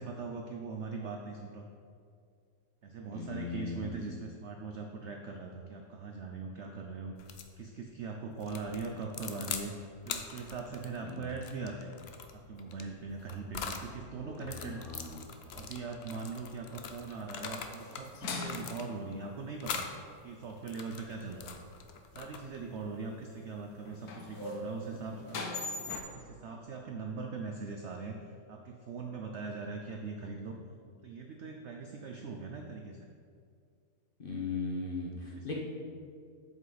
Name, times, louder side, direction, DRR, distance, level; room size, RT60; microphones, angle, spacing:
voice 1, 0.0-1.6 2.8-11.9 12.3-14.8 15.4-19.9 20.2-21.5 22.1-28.2 28.5-30.6 31.0-33.1 35.4-35.5, right 4 dB, 65° right, 2 dB, 0.7 m, -41 dB
voice 2, 3.1-4.0 11.0-11.3 14.2-15.2 34.2-35.5, left 3 dB, 35° left, -2 dB, 1.1 m, -38 dB
sound 1, 7.2-7.5 8.4-9.7 10.0-13.9 14.4-18.1 18.4-19.1 19.6-20.0 20.5-22.6, left 6 dB, 85° left, 0.5 m, -42 dB
sound 2, 17.5-18.9 22.6-22.7 23.9-26.0, left 3 dB, 65° left, 1.3 m, -40 dB
8.1 x 7.6 x 4.0 m, 2.2 s
omnidirectional pair, 1.9 m